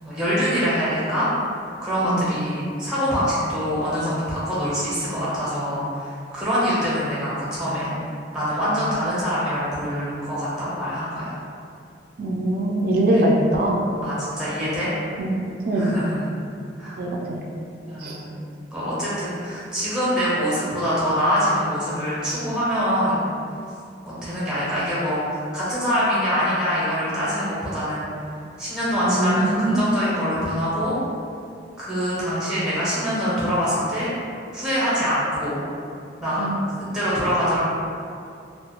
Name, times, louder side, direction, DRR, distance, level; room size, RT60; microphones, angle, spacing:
voice 1, 0.0-1.3 1.8-7.9 8.3-11.3 13.1-13.2 14.0-14.9 15.7-16.3 16.8-17.0 17.9-18.4 18.7-23.2 24.1-28.3 28.6-31.0 31.8-34.1 34.5-35.6 36.2-36.4 36.9-37.6, equal, 5° right, -10 dB, 0.6 m, -24 dB
voice 2, 12.2-13.8 15.2-15.4 15.6-15.9 17.0-17.4 18.0-18.2 29.0-29.8 36.4-36.6, right 1 dB, 55° right, -1 dB, 0.3 m, -22 dB
2.4 x 2.1 x 2.8 m, 2.5 s
head